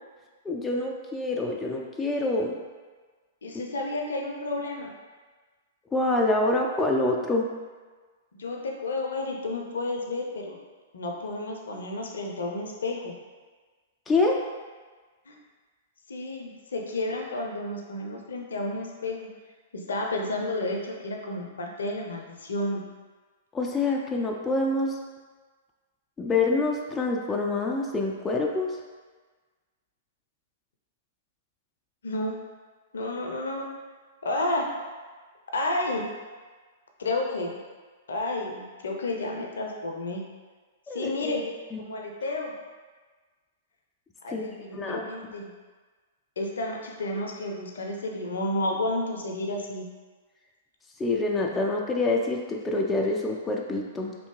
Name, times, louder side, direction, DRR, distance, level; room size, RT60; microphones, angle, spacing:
voice 1, 0.5-2.6 5.9-7.5 14.1-14.4 23.5-25.0 26.2-28.8 40.9-41.8 44.3-44.5 44.8-45.0 51.0-54.2, left 2 dB, 15° left, 0 dB, 0.3 m, -26 dB
voice 2, 3.4-4.9 8.3-10.6 10.9-13.1 15.3-15.4 16.1-19.3 19.7-22.8 32.0-32.3 32.9-33.7 34.2-34.7 35.5-36.1 37.0-37.6 38.1-40.2 40.9-41.4 41.8-42.5 44.2-45.5 46.4-49.8, left 2 dB, 70° left, 1 dB, 0.5 m, -31 dB
3.3 x 2.6 x 3.1 m, 1.4 s
figure-of-eight pair, 105°, 0 cm